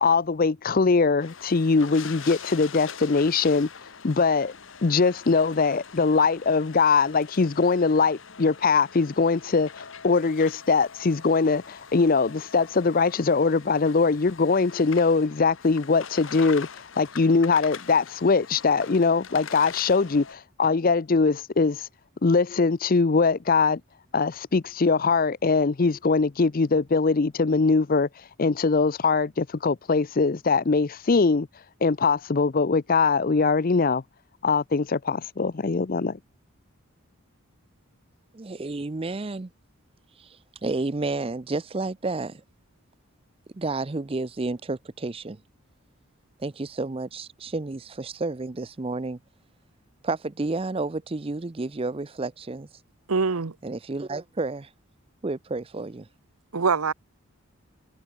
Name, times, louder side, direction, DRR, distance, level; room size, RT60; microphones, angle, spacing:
voice 1, 0.0-3.7 4.0-4.5 4.8-21.9 22.2-23.8 24.1-28.1 28.4-31.5 31.8-34.0 34.4-36.2, left 4 dB, 40° left, 0.5 m, -22 dB
sound 1, 1.2-20.3, left 6 dB, 60° left, 1.3 m, -43 dB
voice 2, 38.3-39.5 40.2-42.4 43.5-45.4 46.4-49.2 50.0-52.7 53.6-54.7 55.2-56.1, right 3 dB, 25° right, 0.5 m, -31 dB
voice 3, 53.1-53.5 56.5-56.9, right 4 dB, 90° right, 0.9 m, -23 dB
head